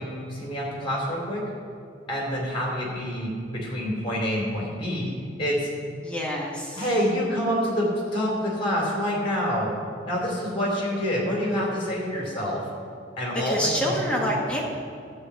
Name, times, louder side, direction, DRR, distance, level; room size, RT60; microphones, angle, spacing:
voice 1, 0.0-1.4 2.1-5.1 5.4-5.7 6.7-9.7 10.0-12.6 13.2-13.9, equal, 30° left, -3 dB, 3.1 m, -27 dB
voice 2, 6.0-6.8 13.4-14.6, equal, 5° left, -4 dB, 1.4 m, -27 dB
11.5 x 5.0 x 8.1 m, 2.4 s
head